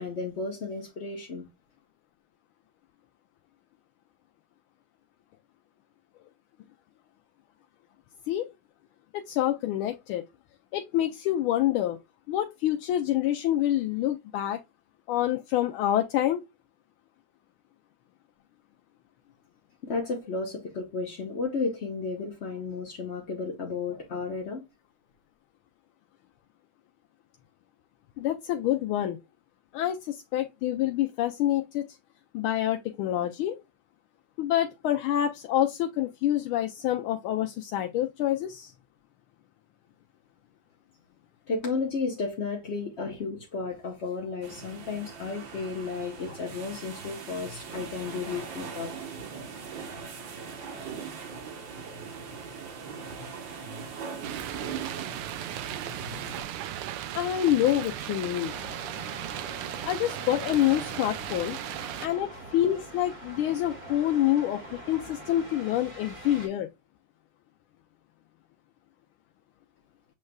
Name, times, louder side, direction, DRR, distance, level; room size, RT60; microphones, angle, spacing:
voice 1, 0.0-1.5 19.8-24.6 41.5-48.9, left 4 dB, 45° left, 0.8 m, -33 dB
voice 2, 9.1-10.2 10.7-12.0 12.3-14.6 15.1-16.4 28.2-29.2 29.7-31.9 32.3-33.6 34.4-38.7 46.2-46.3 57.1-58.5 59.8-61.6 62.0-66.7, left 12 dB, 80° left, 1.4 m, -27 dB
sound 1, 44.4-56.4, right 5 dB, 65° right, 1.6 m, -40 dB
sound 2, 54.2-62.1, right 11 dB, 85° right, 1.5 m, -37 dB
sound 3, 58.5-66.5, right 1 dB, 20° right, 1.3 m, -43 dB
7.6 x 3.1 x 2.2 m
omnidirectional pair, 2.4 m